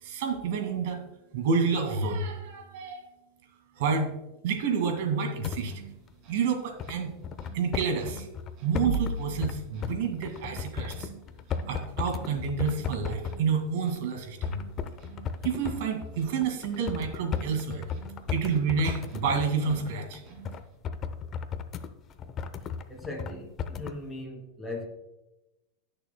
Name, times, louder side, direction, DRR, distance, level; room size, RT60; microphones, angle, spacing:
voice 1, 0.0-1.0 1.3-3.1 3.8-4.1 4.4-5.8 6.3-7.1 7.5-8.3 8.6-11.1 11.7-14.6 15.4-17.9 18.3-20.2, right 5 dB, 70° right, 5 dB, 2.0 m, -29 dB
sound 1, 5.4-5.6 6.1-6.2 6.8-9.1 9.4-9.6 9.8-13.4 14.0-14.1 14.4-23.3 23.6-24.0, left 7 dB, 35° left, 0.6 m, -35 dB
sound 2, 5.6-20.8, right 7 dB, 45° right, 2.6 m, -50 dB
sound 3, 8.9-9.8, right 3 dB, 30° right, 2.1 m, -32 dB
voice 2, 22.9-24.9, left 2 dB, 5° left, -2 dB, 2.6 m, -38 dB
17.5 x 6.7 x 2.2 m, 0.96 s
supercardioid pair, 130°, 0 cm